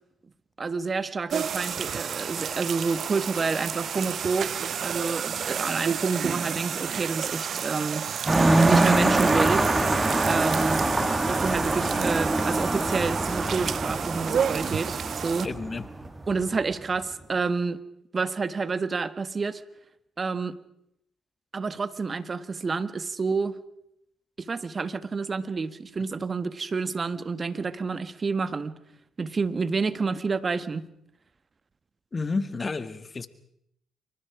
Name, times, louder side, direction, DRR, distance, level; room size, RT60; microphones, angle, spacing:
voice 1, 0.6-8.1 8.7-9.7 10.3-10.9 11.3-15.5 16.3-17.8 18.1-19.6 20.2-20.6 21.5-23.6 24.4-28.8 29.2-30.9, right 4 dB, 40° right, 13 dB, 1.7 m, -29 dB
sound 1, 1.3-15.5, right 8 dB, 60° right, 0.8 m, -31 dB
sound 2, 8.3-16.5, right 2 dB, 25° right, 3.3 m, -24 dB
voice 2, 15.4-15.9 32.1-33.3, left 3 dB, 35° left, 12 dB, 1.9 m, -31 dB
27.0 x 25.0 x 5.0 m, 0.76 s
hypercardioid pair, 50°, 0 cm